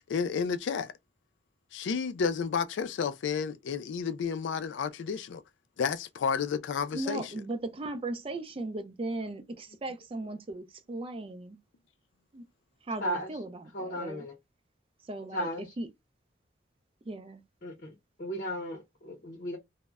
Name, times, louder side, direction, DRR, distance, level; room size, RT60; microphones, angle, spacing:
voice 1, 0.1-0.9 1.7-5.4 5.8-7.2, left 6 dB, 80° left, 0.4 m, -31 dB
voice 2, 6.9-11.6 12.3-12.5 12.8-14.2 15.0-15.5 15.8-15.9 17.1-17.4, right 2 dB, 30° right, 0.4 m, -37 dB
voice 3, 13.0-13.3 13.7-14.3 15.3-15.7 17.6-19.6, equal, 45° left, 0.7 m, -35 dB
2.1 x 2.0 x 3.4 m
head